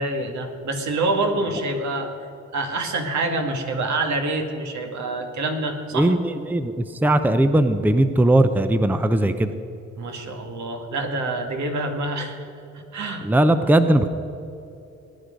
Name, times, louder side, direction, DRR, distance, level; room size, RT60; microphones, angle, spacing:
voice 1, 0.0-2.2 2.5-6.1 10.0-12.5 12.7-13.3, right 2 dB, 70° right, 4 dB, 2.0 m, -26 dB
voice 2, 5.9-9.5 13.2-14.1, right 1 dB, 5° right, 9 dB, 0.7 m, -19 dB
20.0 x 9.9 x 5.2 m, 2.7 s
cardioid pair, 90°, 30 cm